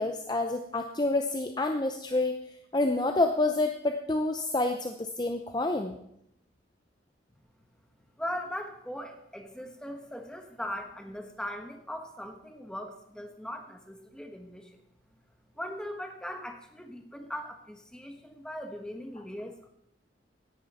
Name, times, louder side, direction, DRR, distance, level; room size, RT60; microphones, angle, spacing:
voice 1, 0.0-2.4 2.7-6.0, left 2 dB, 20° left, 5 dB, 0.7 m, -28 dB
voice 2, 8.2-14.8 15.6-19.7, equal, 5° left, 4 dB, 1.3 m, -39 dB
17.0 x 11.0 x 4.3 m, 0.77 s
head